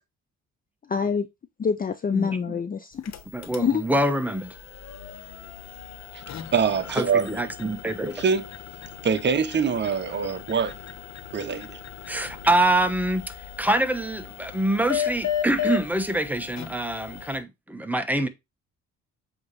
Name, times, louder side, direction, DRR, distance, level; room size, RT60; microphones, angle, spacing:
voice 1, 0.9-1.3 1.6-3.0 3.6-3.8, left 6 dB, 30° left, 0.5 m, -25 dB
voice 2, 2.1-2.6 3.3-4.5 6.9-8.2 12.1-18.3, right 1 dB, 5° right, 1.0 m, -25 dB
sound 1, 2.9-17.4, left 10 dB, 60° left, 1.0 m, -36 dB
voice 3, 6.5-7.3 8.2-8.4 9.0-10.8 11.3-11.8, right 6 dB, 35° right, 0.9 m, -24 dB
7.7 x 3.0 x 4.1 m
cardioid pair, 90°, 30 cm